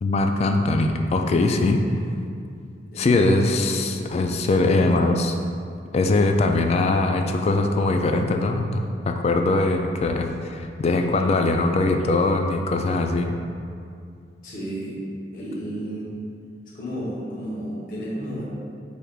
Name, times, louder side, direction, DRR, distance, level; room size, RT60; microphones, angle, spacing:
voice 1, 0.0-1.8 3.0-5.4 5.9-13.4, left 2 dB, 35° left, 4 dB, 0.3 m, -21 dB
voice 2, 2.9-3.5 14.4-15.0 15.3-16.1 16.7-18.4, right 1 dB, 55° left, -7 dB, 0.9 m, -32 dB
6.1 x 3.4 x 2.3 m, 2.3 s
head